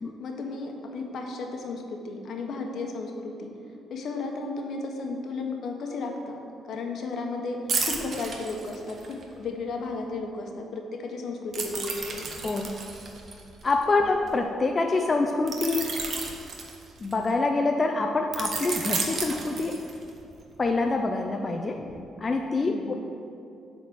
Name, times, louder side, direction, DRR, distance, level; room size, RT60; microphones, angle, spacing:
voice 1, 0.2-3.5 3.9-6.4 6.7-12.3 14.0-14.1 22.6-23.0, left 3 dB, 65° left, 2 dB, 1.1 m, -34 dB
sound 1, 7.7-9.2 11.5-14.3 15.5-17.3 18.3-20.2 20.6-20.8, right 4 dB, 50° right, 1.1 m, -32 dB
voice 2, 13.6-16.0 17.0-19.8 20.6-23.0, left 3 dB, 30° left, 3 dB, 0.5 m, -26 dB
7.6 x 4.3 x 6.9 m, 2.6 s
cardioid pair, 90°, 0 cm